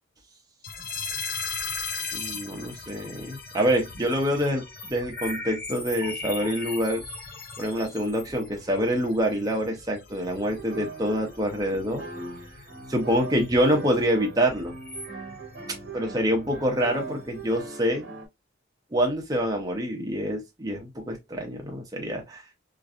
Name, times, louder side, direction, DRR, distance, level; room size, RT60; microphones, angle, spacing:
sound 1, 0.6-17.7, left 4 dB, 45° left, 0.6 m, -39 dB
voice 1, 2.1-7.0 7.6-12.0 12.9-14.7 15.9-18.1 18.9-22.4, equal, 20° right, 0.7 m, -26 dB
sound 2, 10.5-18.3, right 4 dB, 55° right, 1.2 m, -40 dB
3.0 x 2.6 x 2.4 m
head